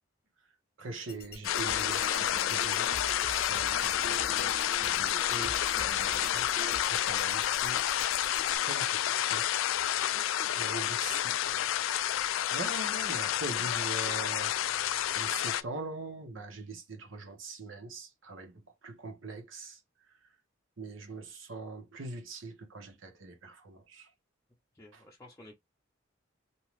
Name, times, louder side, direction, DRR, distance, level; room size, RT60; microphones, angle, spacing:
voice 1, 0.8-2.9 3.4-9.7 10.5-11.3 12.5-14.5 15.1-19.8 20.8-24.1, right 3 dB, 80° right, 0.9 m, -43 dB
sound 1, 1.1-8.6, left 6 dB, 50° left, 0.7 m, -49 dB
sound 2, 1.4-15.6, left 11 dB, 80° left, 0.3 m, -30 dB
sound 3, 1.5-6.8, right 2 dB, 25° right, 0.7 m, -45 dB
voice 2, 10.1-10.7 11.1-11.7 24.7-25.6, left 1 dB, 15° left, 0.6 m, -53 dB
2.7 x 2.2 x 3.0 m
head